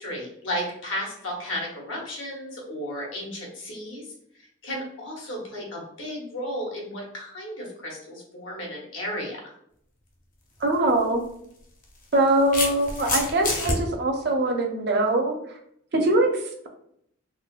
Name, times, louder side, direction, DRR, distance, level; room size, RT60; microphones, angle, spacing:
voice 1, 0.0-4.1 4.6-9.5, equal, 75° left, -1 dB, 1.0 m, -34 dB
sound 1, 10.6-10.8 11.8-13.8, left 2 dB, 40° left, 0.6 m, -27 dB
voice 2, 10.6-11.2 12.1-15.4 15.9-16.7, right 2 dB, 55° right, 3 dB, 0.5 m, -22 dB
3.7 x 2.0 x 2.4 m, 0.70 s
head